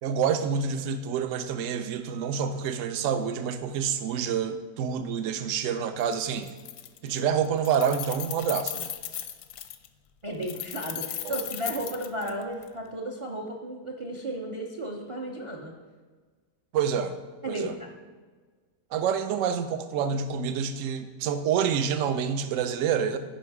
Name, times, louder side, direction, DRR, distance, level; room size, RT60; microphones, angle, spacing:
voice 1, 0.0-6.5 7.0-8.9 11.2-11.4 16.7-17.1 17.5-17.7 18.9-23.2, right 7 dB, 65° right, 10 dB, 0.9 m, -27 dB
Keys jangling, 6.0-6.1 6.4-7.2 7.5-9.9 10.4-12.7, left 11 dB, 70° left, 0.8 m, -36 dB
voice 2, 10.2-15.7 17.4-17.9, right 1 dB, 35° right, 1 dB, 0.5 m, -34 dB
10.0 x 5.2 x 4.8 m, 1.5 s
omnidirectional pair, 1.8 m